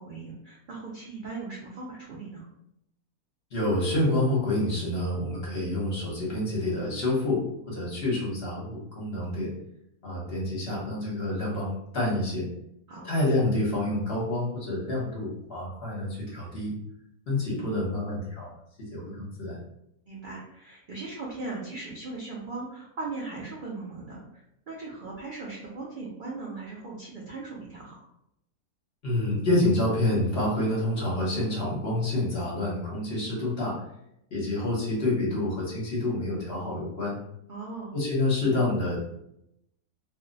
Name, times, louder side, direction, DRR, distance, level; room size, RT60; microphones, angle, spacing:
voice 1, 0.0-2.4 12.9-13.1 20.1-28.1 37.5-37.9, right 3 dB, 80° right, -4 dB, 0.4 m, -38 dB
voice 2, 3.5-9.5 10.0-12.5 13.0-16.7 17.3-18.5 18.9-19.6 29.0-33.8 34.3-37.2 37.9-39.0, left 1 dB, 45° left, -5 dB, 1.0 m, -28 dB
2.5 x 2.1 x 3.8 m, 0.79 s
omnidirectional pair, 1.6 m